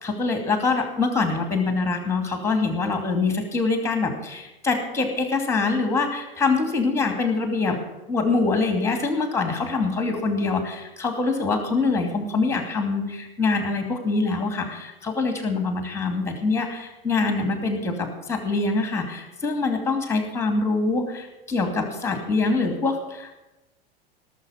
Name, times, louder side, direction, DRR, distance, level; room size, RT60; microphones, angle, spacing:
voice 1, 0.0-7.8 8.1-23.4, left 3 dB, 10° left, 4 dB, 2.6 m, -24 dB
18.0 x 7.6 x 5.8 m, 1.0 s
figure-of-eight pair, 90°, 30 cm